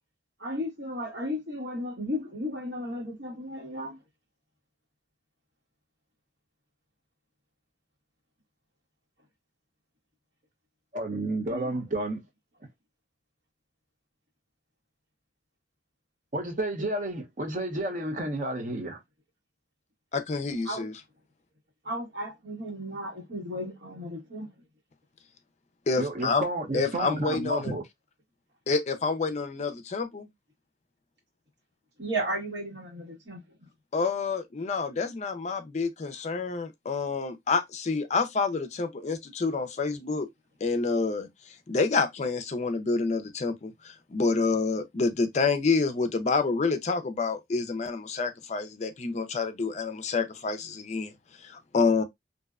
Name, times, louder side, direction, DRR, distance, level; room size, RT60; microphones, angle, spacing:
voice 1, 0.4-4.0 11.5-11.7 20.6-20.9 21.8-24.5 32.0-33.4, equal, 75° right, 1.4 m, -34 dB
voice 2, 10.9-12.2 16.3-19.0 26.0-27.8, right 1 dB, 45° right, 0.7 m, -31 dB
voice 3, 20.1-20.9 25.9-26.4 26.7-27.7 28.7-30.3 33.9-40.3 40.6-51.1 51.4-52.0, left 4 dB, 40° left, 0.4 m, -28 dB
2.6 x 2.1 x 2.4 m
head